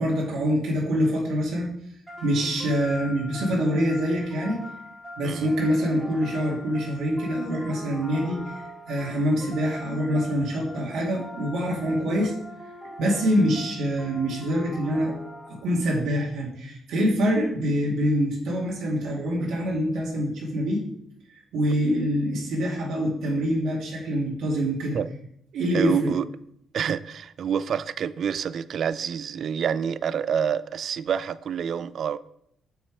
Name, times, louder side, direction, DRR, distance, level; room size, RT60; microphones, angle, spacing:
voice 1, 0.0-1.7 2.2-4.6 5.2-8.5 8.9-12.3 13.0-15.1 15.6-20.8 21.5-25.0 25.5-26.1, equal, 80° right, 2.3 m, -25 dB
sound 1, 2.1-15.9, left 1 dB, 10° right, 2.7 m, -42 dB
voice 2, 25.7-26.3 26.7-32.2, right 7 dB, 60° right, 0.4 m, -27 dB
6.9 x 5.8 x 4.7 m
cardioid pair, 90°, 0 cm